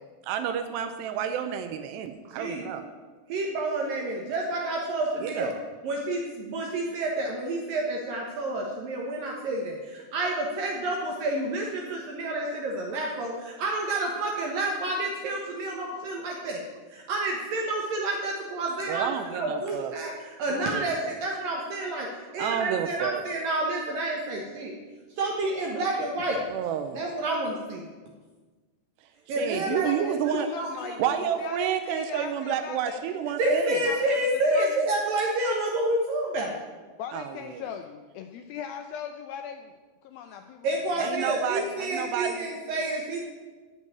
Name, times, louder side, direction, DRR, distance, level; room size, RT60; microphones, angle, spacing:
voice 1, 0.3-2.8 5.2-5.5 18.9-19.9 20.5-21.2 22.4-23.2 26.5-27.0 29.4-30.5 31.0-33.8 37.1-37.6 41.0-42.5, right 9 dB, 85° right, 8 dB, 2.8 m, -30 dB
voice 2, 3.3-5.5 5.8-16.6 16.9-20.1 20.4-22.1 22.3-24.7 25.2-26.4 26.9-27.8 29.3-29.9 30.5-30.9 33.4-36.6 40.6-43.2, right 2 dB, 65° right, -1 dB, 2.6 m, -29 dB
voice 3, 29.6-31.0 31.4-34.2 34.5-34.9 37.0-39.8 40.0-41.4, left 8 dB, 85° left, 7 dB, 2.1 m, -38 dB
14.5 x 5.5 x 9.7 m, 1.4 s
omnidirectional pair, 5.0 m